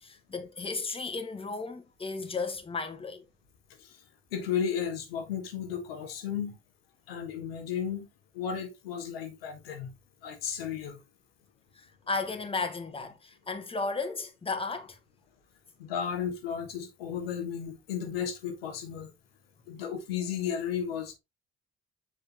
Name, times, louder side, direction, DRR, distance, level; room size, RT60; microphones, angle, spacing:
voice 1, 0.0-3.2 11.7-15.0, left 3 dB, 20° left, 1.4 m, -34 dB
voice 2, 4.3-6.6 7.1-8.1 8.3-9.9 10.2-11.0 15.8-19.1 19.7-21.1, left 8 dB, 75° left, 1.3 m, -34 dB
7.3 x 6.2 x 2.6 m
figure-of-eight pair, 50°, 30 cm